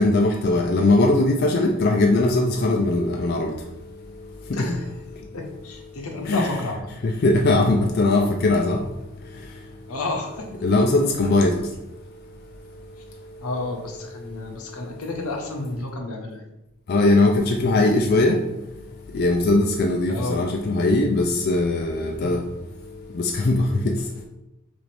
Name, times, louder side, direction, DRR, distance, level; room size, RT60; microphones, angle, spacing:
voice 1, 0.0-3.5 4.6-4.7 6.3-6.6 7.2-8.8 10.6-11.5 16.9-18.4 19.1-22.4 23.2-23.9, left 2 dB, 45° left, 1 dB, 0.4 m, -20 dB
voice 2, 4.5-4.9 5.3-6.9 9.9-10.5 13.4-16.4 20.1-20.4 22.1-22.4, left 2 dB, 85° left, 2 dB, 0.9 m, -31 dB
6.1 x 2.6 x 3.3 m, 0.94 s
head